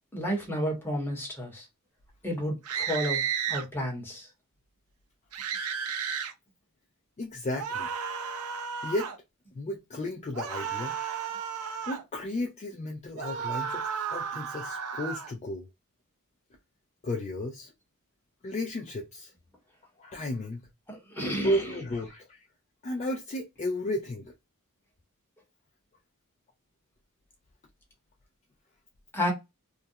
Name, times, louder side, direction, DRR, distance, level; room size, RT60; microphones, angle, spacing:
voice 1, 0.1-1.7 2.2-3.2 3.5-4.3 20.9-21.6 29.1-29.3, equal, 10° left, 0.9 m, -31 dB
sound 1, 2.6-3.6 5.3-6.3 7.6-9.2 10.3-12.0 13.2-15.3, right 7 dB, 85° right, 0.5 m, -33 dB
voice 2, 7.2-7.9 8.8-9.1 9.6-11.0 11.9-15.7 17.0-17.7 18.4-19.3 20.0-20.7 21.2-22.4 22.8-24.3, left 1 dB, 30° left, 0.3 m, -33 dB
2.4 x 2.0 x 2.6 m
head